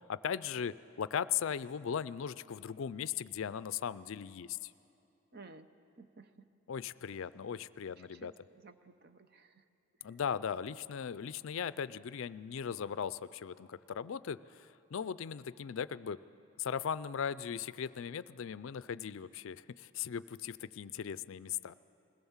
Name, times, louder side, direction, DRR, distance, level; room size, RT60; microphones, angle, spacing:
voice 1, 0.1-4.7 6.7-8.3 10.0-16.2 16.6-21.7, left 7 dB, 65° left, 16 dB, 0.4 m, -38 dB
voice 2, 5.3-5.7 6.0-6.5 8.0-9.6 10.0-10.2, right 4 dB, 45° right, 10 dB, 0.7 m, -56 dB
21.0 x 18.0 x 7.2 m, 2.7 s
head